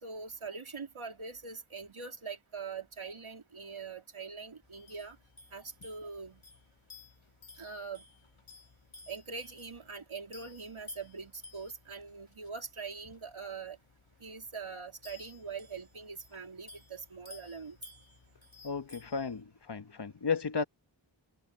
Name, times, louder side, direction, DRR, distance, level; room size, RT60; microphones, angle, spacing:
voice 1, 0.0-5.2 5.5-6.4 7.6-8.0 9.1-13.8 14.2-17.8, right 5 dB, 85° right, 3.3 m, -43 dB
sound 1, 4.6-19.4, left 3 dB, 85° left, 7.4 m, -56 dB
voice 2, 18.6-20.6, left 5 dB, 55° left, 1.3 m, -34 dB
wide cardioid pair, 55°, 47 cm